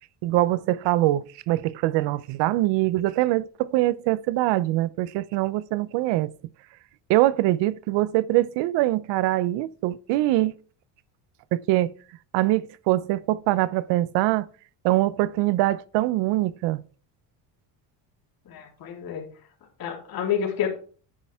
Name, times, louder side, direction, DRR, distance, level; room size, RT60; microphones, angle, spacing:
voice 1, 0.2-6.3 7.1-10.5 11.5-11.9 12.3-14.5 14.8-16.8, right 16 dB, 75° right, 0.7 m, -23 dB
voice 2, 18.5-19.2 19.8-20.7, left 8 dB, 55° left, 3.9 m, -29 dB
9.9 x 9.7 x 3.6 m
cardioid pair, 130°, 43 cm